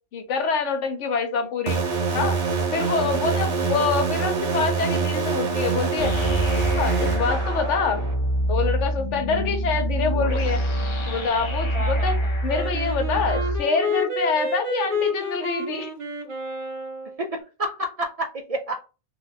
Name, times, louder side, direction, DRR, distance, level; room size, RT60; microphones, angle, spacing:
voice 1, 0.1-1.8 2.1-2.4 2.7-6.1 6.8-8.0 8.5-10.6 11.1-12.2 12.4-15.9, left 5 dB, 85° left, 6 dB, 1.1 m, -26 dB
sound 1, 1.7-8.1, right 5 dB, 80° right, 1.4 m, -25 dB
sound 2, 6.0-13.6, right 1 dB, 35° left, 0.5 m, -25 dB
voice 2, 11.7-12.4 17.2-18.8, right 1 dB, 65° right, 4 dB, 0.3 m, -31 dB
Wind instrument woodwind instrument, 12.5-17.2, left 2 dB, 30° right, 0.8 m, -29 dB
2.9 x 2.3 x 4.0 m, 0.32 s
omnidirectional pair, 1.2 m